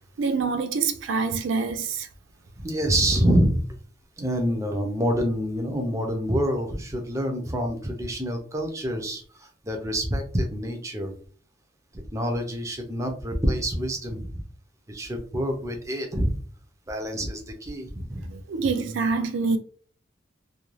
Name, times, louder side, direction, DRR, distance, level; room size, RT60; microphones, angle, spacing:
voice 1, 0.2-2.1 18.2-19.6, right 4 dB, 80° right, 0.4 m, -26 dB
voice 2, 2.6-3.6 4.2-11.1 11.9-14.4 14.9-16.3 16.9-18.3, equal, 15° right, 0.5 m, -27 dB
2.4 x 2.2 x 3.1 m
head